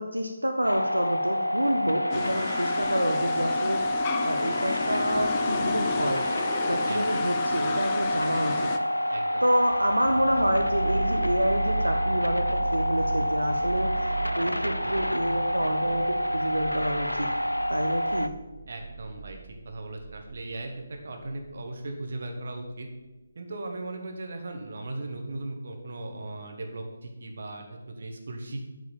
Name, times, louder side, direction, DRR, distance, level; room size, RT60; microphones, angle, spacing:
voice 1, 0.0-3.8 4.2-6.2 6.7-8.7 9.4-13.9 14.4-17.3 17.7-18.3, equal, 80° right, 4 dB, 0.8 m, -28 dB
sound 1, 0.6-18.3, equal, 80° left, 0.6 m, -28 dB
sound 2, 2.1-8.8, left 6 dB, 20° left, 0.5 m, -33 dB
voice 2, 6.9-7.2 9.1-9.5 14.7-14.9 18.7-19.4 19.6-22.9 23.3-28.7, right 2 dB, 50° right, 3 dB, 1.6 m, -38 dB
sound 3, 9.6-22.0 22.5-22.6, right 3 dB, 30° right, 2.1 m, -36 dB
9.0 x 4.9 x 7.2 m, 1.1 s
figure-of-eight pair, 150°, 0 cm